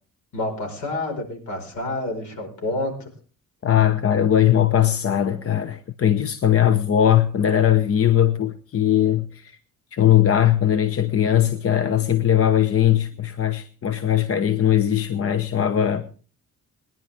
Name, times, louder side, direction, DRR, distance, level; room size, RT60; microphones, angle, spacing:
voice 1, 0.3-3.1, left 2 dB, 70° left, 4.9 m, -28 dB
voice 2, 3.6-9.6 9.9-16.1, left 10 dB, 50° left, 0.9 m, -19 dB
22.0 x 10.5 x 3.5 m
cardioid pair, 90°, 30 cm